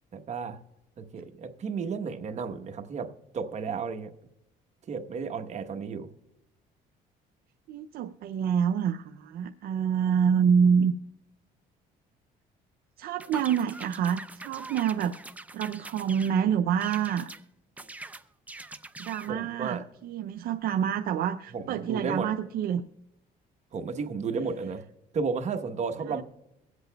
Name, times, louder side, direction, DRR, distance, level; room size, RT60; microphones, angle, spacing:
voice 1, 0.1-0.6 1.0-4.1 4.9-6.1 19.3-19.8 21.5-22.3 23.7-24.8 25.1-26.2, right 5 dB, 45° right, 6 dB, 1.0 m, -33 dB
voice 2, 7.7-10.9 13.0-15.1 15.5-17.3 19.0-22.8 26.1-26.2, right 7 dB, 65° right, 6 dB, 0.5 m, -27 dB
sound 1, 13.2-16.4 16.8-17.4 17.8-19.3, right 2 dB, 10° right, 0.5 m, -43 dB
23.0 x 8.0 x 2.2 m, 0.87 s
cardioid pair, 110°, 17 cm